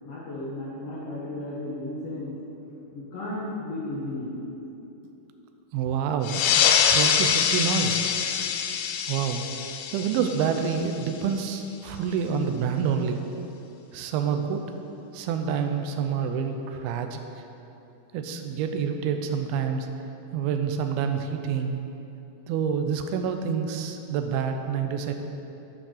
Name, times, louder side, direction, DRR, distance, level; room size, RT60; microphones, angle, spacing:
voice 1, 0.0-2.4 2.9-4.4, left 1 dB, 60° left, -9 dB, 1.8 m, -34 dB
voice 2, 5.7-6.5 6.9-8.1 9.1-9.4 9.9-13.2 13.9-14.6 15.1-17.2 18.1-19.9 20.3-21.8 22.5-25.1, right 6 dB, 85° right, 6 dB, 2.5 m, -27 dB
sound 1, 6.2-11.3, left 8 dB, 85° left, 2.0 m, -25 dB
8.1 x 6.0 x 6.4 m, 2.9 s
omnidirectional pair, 4.4 m